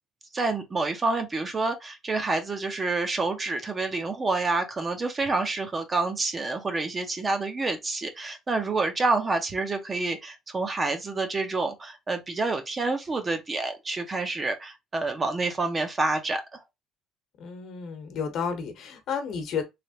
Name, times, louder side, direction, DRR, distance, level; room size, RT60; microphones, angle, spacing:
voice 1, 0.3-16.6, right 3 dB, 25° right, 0.7 m, -28 dB
voice 2, 17.4-19.6, left 6 dB, 60° left, 1.0 m, -32 dB
3.3 x 3.0 x 2.8 m
cardioid pair, 135°, 0 cm